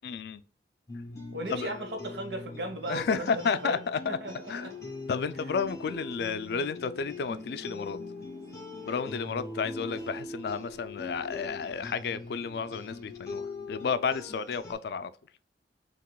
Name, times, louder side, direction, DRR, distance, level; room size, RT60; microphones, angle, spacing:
voice 1, 0.0-0.4 1.5-1.7 2.9-4.2 4.5-4.7 5.1-8.0 8.8-15.1, left 5 dB, 65° left, 0.3 m, -32 dB
sound 1, 0.9-14.7, left 2 dB, 20° left, 1.6 m, -42 dB
voice 2, 1.3-3.8 4.2-4.7 9.8-10.0, right 1 dB, 70° right, 1.1 m, -37 dB
sound 2, 4.8-10.3, left 3 dB, 40° right, 1.9 m, -54 dB
5.8 x 2.9 x 2.2 m
head